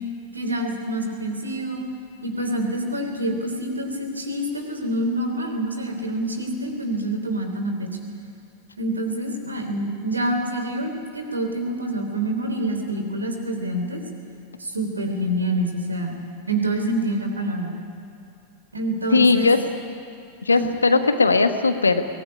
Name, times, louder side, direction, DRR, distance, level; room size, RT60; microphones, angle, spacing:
voice 1, 0.3-1.8 2.2-7.9 8.8-14.0 14.6-16.2 16.5-17.7 18.7-19.5 20.5-20.7, right 1 dB, 80° right, 5 dB, 3.5 m, -26 dB
voice 2, 19.1-19.6 20.5-22.0, left 4 dB, 75° left, 8 dB, 1.4 m, -18 dB
23.0 x 19.0 x 9.8 m, 2.5 s
figure-of-eight pair, 90°, 0 cm